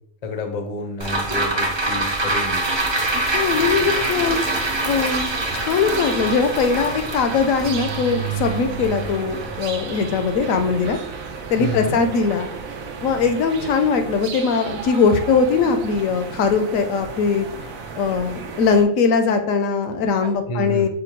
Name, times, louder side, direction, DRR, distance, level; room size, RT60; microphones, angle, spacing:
voice 1, 0.2-2.6 11.6-12.0 20.5-20.9, left 2 dB, 50° left, 5 dB, 0.4 m, -29 dB
sound 1, 1.0-11.5 11.9-12.0, right 2 dB, 45° right, 0.3 m, -25 dB
sound 2, 2.2-13.6 19.8-19.9 20.2-20.4, right 10 dB, 65° right, 0.8 m, -38 dB
voice 2, 3.1-4.4 4.8-11.0 11.5-12.5 13.0-17.7 18.0-20.9, left 5 dB, 75° left, 7 dB, 0.9 m, -20 dB
sound 3, 3.5-18.8, right 5 dB, 80° right, 1.1 m, -34 dB
5.1 x 2.1 x 4.5 m, 0.70 s
omnidirectional pair, 1.5 m